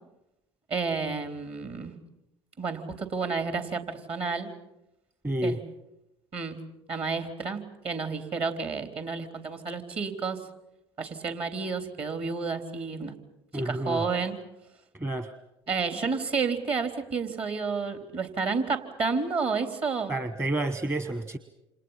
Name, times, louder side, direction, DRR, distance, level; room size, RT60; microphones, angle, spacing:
voice 1, 0.7-1.9 2.6-4.5 5.4-5.6 6.3-6.6 6.9-10.4 11.0-13.1 13.5-14.4 15.7-20.1, right 4 dB, 45° right, 7 dB, 3.7 m, -30 dB
voice 2, 5.2-5.6 13.5-14.0 14.9-15.3 20.1-21.4, right 1 dB, 20° right, 11 dB, 1.2 m, -29 dB
29.0 x 28.0 x 5.8 m, 0.90 s
hypercardioid pair, 60°, 13 cm